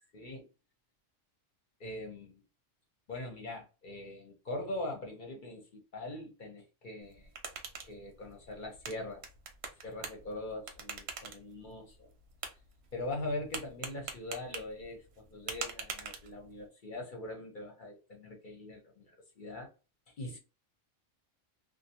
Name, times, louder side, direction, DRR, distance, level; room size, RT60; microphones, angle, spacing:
voice 1, 0.1-0.5 1.8-2.4 3.1-7.3 7.8-9.2 9.8-12.1 12.9-19.7 20.2-20.4, left 2 dB, 50° left, 0.6 m, -42 dB
sound 1, 7.0-16.7, right 5 dB, 60° right, 0.8 m, -45 dB
2.5 x 2.0 x 2.7 m
omnidirectional pair, 1.4 m